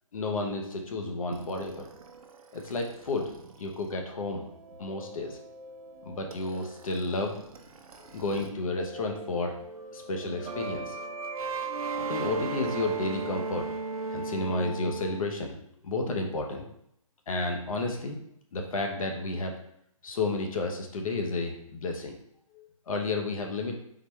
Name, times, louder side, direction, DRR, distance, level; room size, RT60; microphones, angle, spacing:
voice 1, 0.1-1.9 2.5-4.4 4.8-5.4 6.1-7.4 8.1-9.6 9.9-11.0 12.0-13.7 14.1-15.6 15.8-16.7 17.3-18.2 18.5-19.6 20.0-22.2 22.5-23.7, left 2 dB, 70° left, 2 dB, 0.9 m, -31 dB
sound 1, 1.3-8.5 8.8-15.2, right 4 dB, 85° right, 0.6 m, -38 dB
3.9 x 3.4 x 3.1 m, 0.74 s
hypercardioid pair, 155°, 18 cm